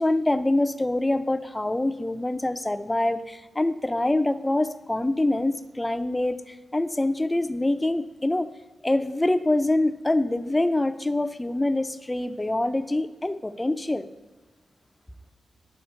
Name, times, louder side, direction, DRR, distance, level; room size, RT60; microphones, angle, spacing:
voice 1, 0.0-8.5 8.8-14.1, left 1 dB, 15° left, 10 dB, 0.5 m, -25 dB
10.0 x 7.1 x 4.5 m, 1.2 s
cardioid pair, 80°, 0 cm